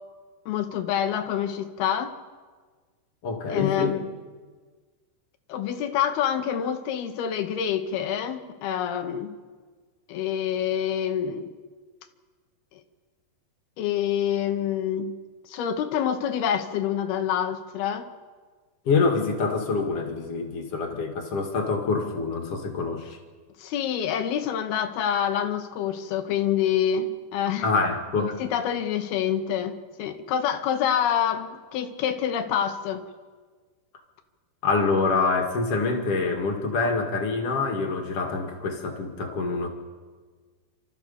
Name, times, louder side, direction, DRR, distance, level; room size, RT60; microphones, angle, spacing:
voice 1, 0.5-2.1 3.5-4.1 5.5-9.4 10.1-11.5 13.8-15.1 15.5-18.1 23.6-27.7 28.2-33.0, left 9 dB, 85° left, 8 dB, 3.1 m, -27 dB
voice 2, 3.2-4.0 18.9-23.2 27.6-28.4 34.6-39.7, left 4 dB, 45° left, 4 dB, 2.5 m, -26 dB
29.5 x 13.0 x 7.1 m, 1.5 s
omnidirectional pair, 4.4 m